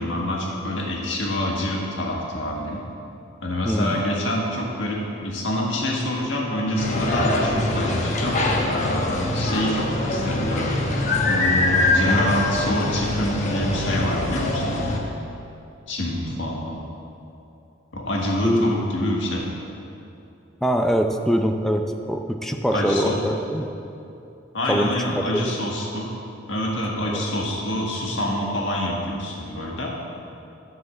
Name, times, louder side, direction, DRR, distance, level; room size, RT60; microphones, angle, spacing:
voice 1, 0.0-2.8 3.4-10.8 11.3-15.0 15.9-16.8 17.9-19.5 22.7-23.2 24.5-26.1 26.5-29.9, left 1 dB, 70° left, -3 dB, 1.7 m, -26 dB
voice 2, 3.6-4.0 18.4-18.8 20.6-23.7 24.7-25.4 27.1-27.2, equal, ahead, 4 dB, 0.5 m, -23 dB
sound 1, 6.8-15.0, left 2 dB, 40° left, 1.1 m, -23 dB
11.5 x 4.8 x 7.2 m, 2.8 s
head